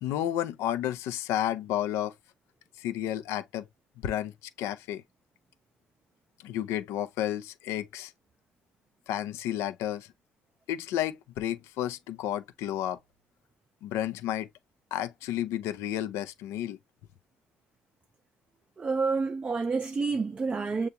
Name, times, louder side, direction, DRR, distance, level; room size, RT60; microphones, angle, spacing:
voice 1, 0.0-2.1 2.8-3.7 4.0-4.3 4.6-5.0 6.4-8.1 9.1-10.1 10.7-13.0 13.8-14.5 14.9-16.8, left 12 dB, 85° left, 0.5 m, -31 dB
voice 2, 18.8-20.9, right 4 dB, 30° right, 0.4 m, -28 dB
6.7 x 2.3 x 2.8 m
cardioid pair, 80°, 4 cm